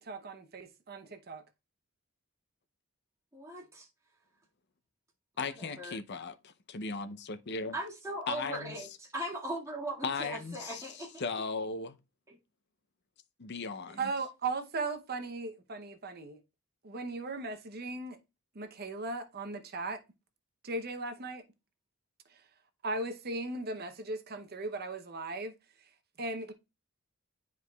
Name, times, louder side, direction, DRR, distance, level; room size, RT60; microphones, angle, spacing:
voice 1, 0.0-1.4 14.0-16.4 16.8-18.2 18.5-20.0 20.6-21.4 22.3-22.4 22.8-25.5 26.2-26.5, right 3 dB, 50° right, 0.8 m, -37 dB
voice 2, 3.3-3.9 5.6-6.0 6.8-6.9 7.7-11.2 12.3-12.4 13.9-14.0, right 1 dB, 15° right, 1.9 m, -39 dB
voice 3, 5.4-7.8 8.3-8.9 10.0-12.0 13.4-14.1, left 4 dB, 55° left, 0.6 m, -37 dB
9.9 x 4.7 x 2.3 m
head